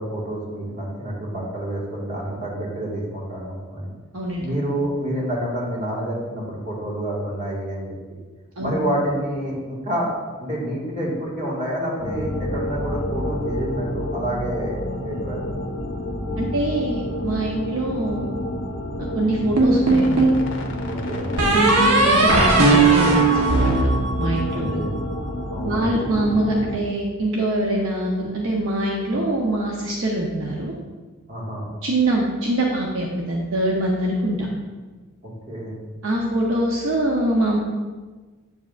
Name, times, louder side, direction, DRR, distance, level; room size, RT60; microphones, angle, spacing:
voice 1, 0.0-3.9 4.4-7.9 8.6-10.1 10.4-15.4 20.9-21.4 24.5-24.9 25.5-26.0 31.3-31.7 35.2-35.8, right 1 dB, 35° right, -4 dB, 1.8 m, -28 dB
voice 2, 4.1-4.4 8.6-8.8 16.4-18.3 19.1-20.3 21.4-23.9 24.2-24.8 25.6-30.7 31.8-34.5 36.0-37.6, right 1 dB, 65° right, -2 dB, 0.8 m, -24 dB
sound 1, 12.0-26.8, left 1 dB, 55° left, 0.9 m, -29 dB
sound 2, 19.6-20.4 21.4-24.7, right 3 dB, 85° right, 1.1 m, -17 dB
7.8 x 7.2 x 2.5 m, 1.3 s
head